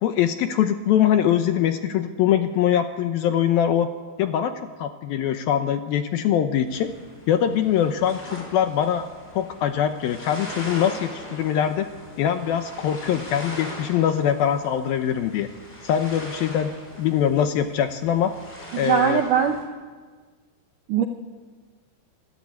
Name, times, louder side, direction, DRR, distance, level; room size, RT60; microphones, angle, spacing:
voice 1, 0.0-3.9 4.2-6.9 7.3-9.1 9.3-11.9 12.2-15.5 15.8-18.3 18.7-19.2, left 9 dB, 75° left, 8 dB, 2.3 m, -23 dB
sound 1, 6.7-19.6, equal, 10° left, 6.0 m, -41 dB
voice 2, 18.7-19.6 20.9-21.0, right 8 dB, 75° right, 5 dB, 1.9 m, -21 dB
26.0 x 14.0 x 9.5 m, 1.5 s
omnidirectional pair, 5.0 m